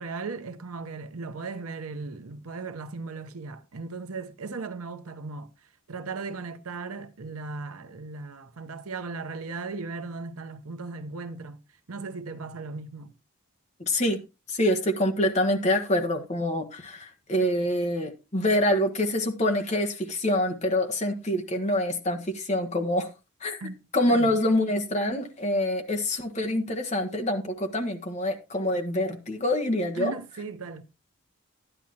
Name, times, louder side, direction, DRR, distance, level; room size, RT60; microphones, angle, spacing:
voice 1, 0.0-5.5 5.9-13.2 23.6-23.8 24.1-24.3 29.9-30.8, right 4 dB, 85° right, 0.9 m, -37 dB
voice 2, 13.8-14.2 14.5-23.1 23.4-23.6 23.9-30.1, left 1 dB, 30° left, 1.3 m, -26 dB
12.0 x 9.9 x 2.9 m
head